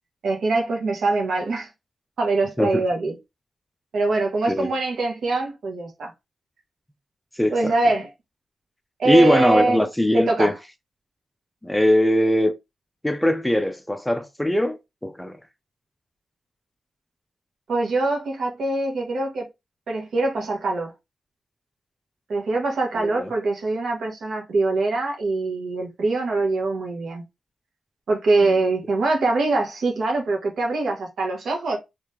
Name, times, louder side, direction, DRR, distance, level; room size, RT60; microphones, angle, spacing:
voice 1, 0.2-1.7 2.2-3.2 3.9-6.1 7.5-8.1 9.0-9.8 10.1-10.5 17.7-19.5 19.9-20.9 22.3-27.2 28.1-31.8, right 3 dB, 70° right, 1.6 m, -23 dB
voice 2, 7.4-7.7 9.0-10.5 11.6-12.5 13.0-15.4 23.0-23.3 28.4-28.5, left 1 dB, 5° left, 0.5 m, -21 dB
3.3 x 3.2 x 3.0 m
cardioid pair, 70°, 0 cm